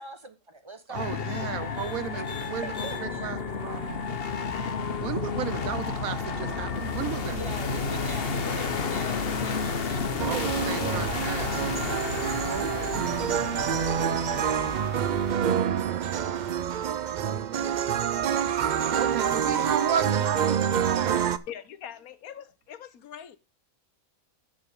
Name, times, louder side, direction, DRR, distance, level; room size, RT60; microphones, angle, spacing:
voice 1, 0.0-1.2 2.1-2.2 2.6-3.3 7.3-10.4 11.5-12.1, right 2 dB, 25° right, 1.0 m, -42 dB
sound 1, 0.9-15.3, left 5 dB, 45° left, 1.2 m, -31 dB
voice 2, 0.9-4.0 4.8-7.4 10.3-11.7 12.3-15.2 16.3-17.8 19.0-21.4, right 9 dB, 90° right, 1.3 m, -35 dB
sound 2, 10.2-21.4, right 8 dB, 75° right, 0.4 m, -27 dB
voice 3, 21.5-23.4, left 9 dB, 85° left, 1.4 m, -42 dB
11.5 x 7.0 x 3.6 m
omnidirectional pair, 1.5 m